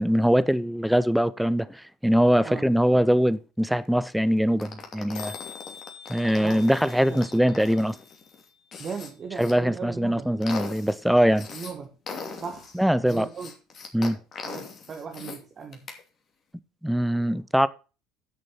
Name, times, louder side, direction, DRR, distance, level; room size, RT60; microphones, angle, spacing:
voice 1, 0.0-5.3 6.1-8.0 9.4-11.5 12.7-13.3 13.9-14.2 16.8-17.7, equal, ahead, 0.8 m, -22 dB
sound 1, 3.1-3.2 3.3-3.4 3.6-3.9 4.1-4.2 4.4-4.6 4.9-5.0 5.1-9.1, left 9 dB, 60° left, 1.2 m, -46 dB
sound 2, 4.6-9.5 10.0-11.7 12.1-15.4 15.7-16.0, left 5 dB, 40° left, 2.7 m, -40 dB
sound 3, 5.7-7.3, right 3 dB, 70° right, 4.2 m, -57 dB
voice 2, 8.8-10.3 11.5-11.9 12.4-12.7 13.0-13.5 14.4-15.9, right 6 dB, 40° right, 1.6 m, -37 dB
10.5 x 6.3 x 5.8 m
figure-of-eight pair, 65°, 0 cm